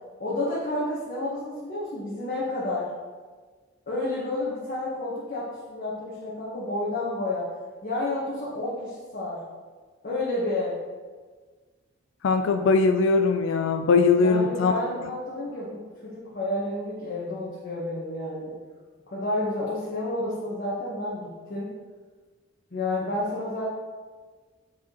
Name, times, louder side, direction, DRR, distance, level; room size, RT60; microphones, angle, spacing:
voice 1, 0.2-2.9 3.9-7.5 7.8-9.4 10.0-10.8 14.2-18.5 19.1-21.7 22.7-23.7, left 2 dB, 50° left, -7 dB, 1.2 m, -30 dB
voice 2, 12.2-14.7, left 4 dB, 70° left, 7 dB, 0.3 m, -21 dB
6.9 x 4.7 x 3.0 m, 1.4 s
head